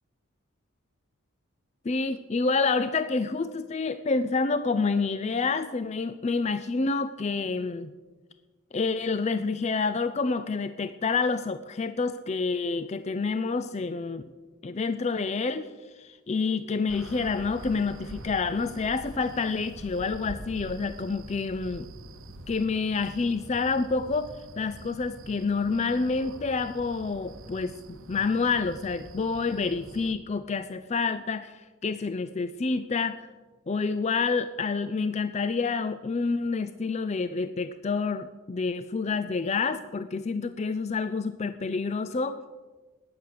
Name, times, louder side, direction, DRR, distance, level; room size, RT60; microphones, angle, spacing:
voice 1, 1.8-7.9 8.7-14.2 14.6-21.9 22.5-33.3 33.7-42.4, left 4 dB, 30° left, 12 dB, 0.4 m, -28 dB
sound 1, 16.9-30.1, right 1 dB, 65° right, 1.1 m, -45 dB
14.5 x 9.8 x 6.7 m, 1.3 s
head